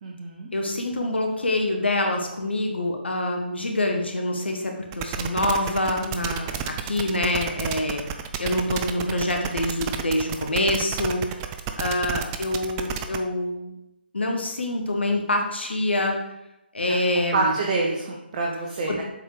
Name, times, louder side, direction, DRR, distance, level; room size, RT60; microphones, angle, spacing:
voice 1, 0.0-0.5 17.3-19.0, right 3 dB, 40° right, 0 dB, 1.0 m, -26 dB
voice 2, 0.5-8.0 8.4-11.2 11.8-13.7 14.1-16.1 16.7-17.5 18.9-19.0, left 1 dB, 75° left, 2 dB, 1.6 m, -26 dB
sound 1, 4.9-13.2, right 9 dB, 20° right, 0.4 m, -31 dB
7.4 x 4.5 x 5.1 m, 0.90 s
figure-of-eight pair, 145°, 6 cm